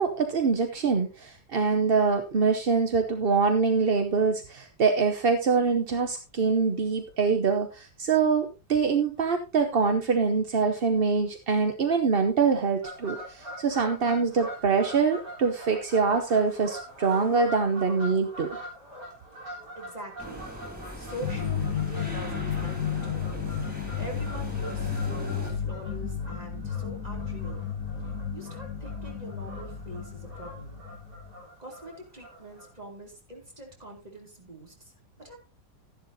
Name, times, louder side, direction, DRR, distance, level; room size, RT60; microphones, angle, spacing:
voice 1, 0.0-18.6, right 5 dB, 45° right, 6 dB, 0.9 m, -24 dB
Fowl / Bird vocalization bird call bird song, 12.8-32.7, equal, 65° right, 4.6 m, -44 dB
voice 2, 19.7-20.5 20.9-27.7 28.3-30.8 31.6-34.9 35.2-35.4, right 1 dB, 20° right, 0 dB, 3.2 m, -44 dB
sound 1, 20.2-25.5, equal, 10° left, 3.8 m, -40 dB
sound 2, 21.2-31.4, left 7 dB, 65° left, 1.6 m, -33 dB
12.5 x 11.0 x 2.7 m, 0.29 s
omnidirectional pair, 2.0 m